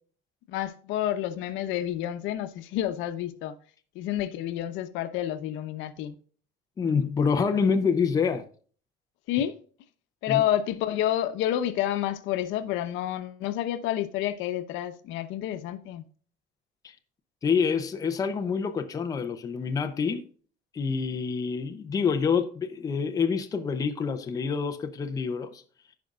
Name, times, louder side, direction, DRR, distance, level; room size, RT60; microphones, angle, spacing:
voice 1, 0.5-3.6 3.9-6.1 9.3-9.6 10.2-16.0, left 12 dB, 75° left, 0.9 m, -29 dB
voice 2, 6.8-8.4 10.3-10.4 16.8-16.9 17.4-20.2 20.7-25.6, left 5 dB, 20° left, 0.6 m, -27 dB
15.0 x 5.3 x 2.4 m
cardioid pair, 180°, 20 cm